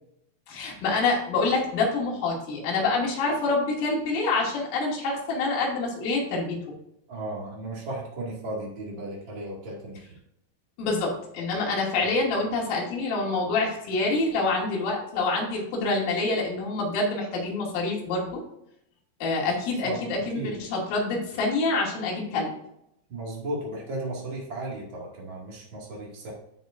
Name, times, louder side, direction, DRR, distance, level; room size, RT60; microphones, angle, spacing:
voice 1, 0.5-6.6 10.8-18.4 19.2-22.5, left 3 dB, 75° left, -3 dB, 4.9 m, -26 dB
voice 2, 7.1-10.0 19.8-20.6 23.1-26.3, right 1 dB, 75° right, -4 dB, 1.1 m, -35 dB
14.5 x 5.2 x 2.5 m, 0.76 s
omnidirectional pair, 5.9 m